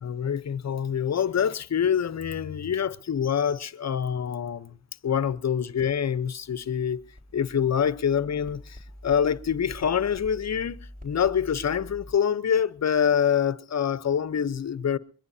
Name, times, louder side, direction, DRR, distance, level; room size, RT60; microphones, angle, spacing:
voice 1, 0.0-4.8 5.0-7.0 7.3-10.8 11.0-15.0, left 8 dB, 50° left, 0.8 m, -26 dB
sound 1, 6.2-12.1, equal, 25° right, 4.5 m, -46 dB
22.5 x 21.0 x 2.7 m
cardioid pair, 65°, 36 cm